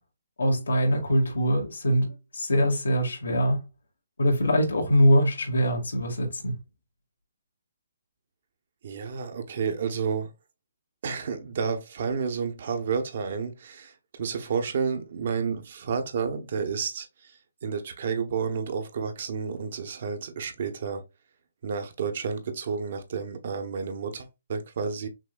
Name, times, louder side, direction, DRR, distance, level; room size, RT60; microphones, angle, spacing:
voice 1, 0.4-3.6 4.2-6.5, equal, 85° left, 1.9 m, -23 dB
voice 2, 8.8-10.3 11.0-17.1 17.6-21.0 21.6-25.1, right 6 dB, 55° right, 1.0 m, -30 dB
5.9 x 2.8 x 2.3 m
hypercardioid pair, 150°, 0 cm